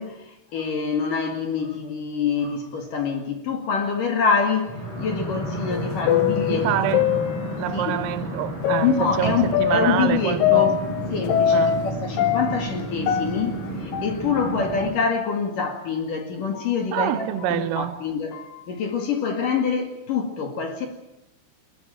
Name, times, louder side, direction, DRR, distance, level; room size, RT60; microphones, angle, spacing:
voice 1, 0.0-6.9 7.7-8.0 8.8-10.8 11.1-18.4 18.7-20.9, left 5 dB, 50° left, 3.0 m, -26 dB
sound 1, 4.6-14.9, right 1 dB, 25° left, 7.2 m, -31 dB
sound 2, 5.7-7.9 8.6-11.9 12.2-14.5 14.8-14.9 15.7-15.8 16.5-16.7 17.4-17.5 18.3-18.6, left 10 dB, 75° left, 2.1 m, -24 dB
voice 2, 6.5-7.2 7.6-10.7 11.5-11.9 16.9-18.0, right 13 dB, 80° right, 3.7 m, -26 dB
21.5 x 19.0 x 9.0 m
omnidirectional pair, 5.9 m